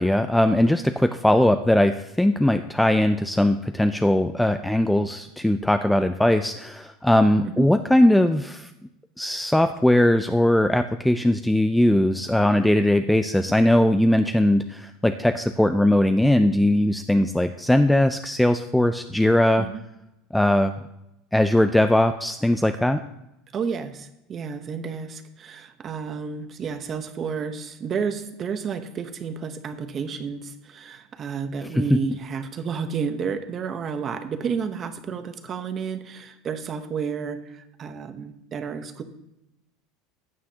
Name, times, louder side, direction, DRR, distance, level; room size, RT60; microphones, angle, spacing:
voice 1, 0.0-8.7 9.2-19.7 20.3-20.7 21.3-23.0 31.8-32.0, left 1 dB, 5° left, 8 dB, 0.3 m, -20 dB
voice 2, 23.5-39.0, right 6 dB, 25° right, 9 dB, 0.9 m, -31 dB
15.0 x 9.6 x 2.8 m, 0.89 s
supercardioid pair, 160°, 0 cm